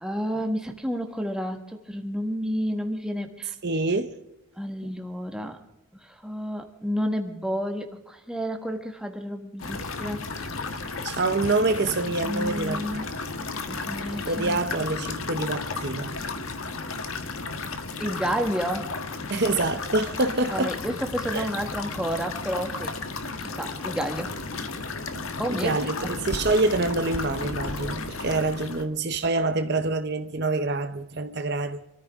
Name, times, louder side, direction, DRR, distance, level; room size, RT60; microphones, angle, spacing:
voice 1, 0.0-3.5 4.6-5.6 6.0-10.5 10.8-10.9 12.2-13.1 13.7-14.6 18.0-18.9 20.5-22.9 23.4-24.3 25.4-25.8, equal, 5° right, 1.6 m, -30 dB
voice 2, 3.6-4.1 4.8-4.9 11.0-13.1 14.3-16.1 19.3-20.8 21.3-21.5 25.1-31.8, right 2 dB, 50° right, 0.8 m, -26 dB
sound 1, 9.6-28.9, left 3 dB, 70° left, 1.6 m, -33 dB
27.0 x 14.0 x 3.7 m
head